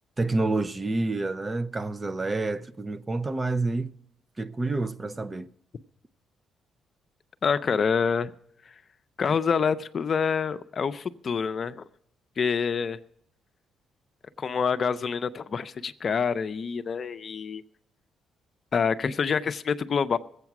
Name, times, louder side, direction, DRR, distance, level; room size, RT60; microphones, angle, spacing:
voice 1, 0.2-3.9 4.4-5.5, right 2 dB, 25° right, 0.6 m, -28 dB
voice 2, 7.4-8.3 9.2-11.8 12.4-13.0 14.4-17.6 18.7-20.2, left 6 dB, 45° left, 0.6 m, -26 dB
20.0 x 8.1 x 6.0 m
cardioid pair, 90°, 0 cm